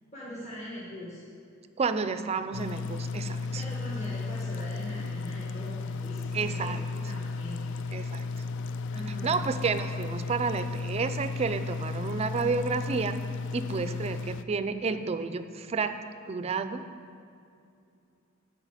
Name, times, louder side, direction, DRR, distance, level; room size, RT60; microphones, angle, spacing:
voice 1, 0.1-1.2 3.5-8.0 8.9-9.4, left 1 dB, 35° left, -7 dB, 1.5 m, -42 dB
voice 2, 1.8-3.6 6.3-6.8 7.9-8.2 9.2-13.2 13.5-15.9 16.3-16.8, right 4 dB, 30° right, 10 dB, 0.4 m, -30 dB
sound 1, 2.5-14.4, left 4 dB, 60° left, 0.3 m, -34 dB
8.1 x 5.4 x 7.3 m, 2.5 s
head